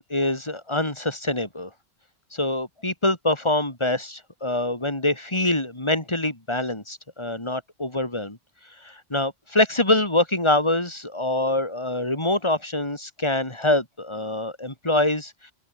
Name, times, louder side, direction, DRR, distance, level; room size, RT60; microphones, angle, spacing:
voice 1, 0.0-1.7 2.3-8.4 8.8-15.5, left 1 dB, 25° left, 3.9 m, -25 dB
open air
omnidirectional pair, 1.2 m